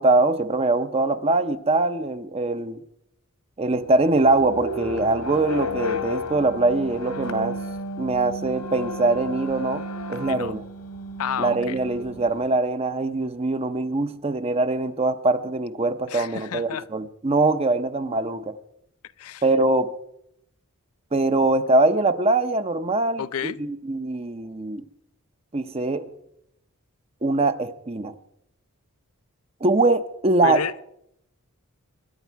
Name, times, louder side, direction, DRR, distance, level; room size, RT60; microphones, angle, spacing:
voice 1, 0.0-2.8 3.6-7.6 8.0-9.8 10.1-10.6 11.4-18.5 19.4-19.9 21.1-24.8 25.5-26.1 27.2-28.1 29.6-30.6, right 2 dB, 25° right, 0.7 m, -22 dB
sound 1, 3.7-12.5, left 1 dB, 90° left, 1.8 m, -33 dB
voice 2, 11.2-11.8 16.1-16.9 19.2-19.4 23.2-23.6 30.4-30.8, left 7 dB, 70° left, 0.5 m, -30 dB
23.5 x 10.5 x 4.6 m
head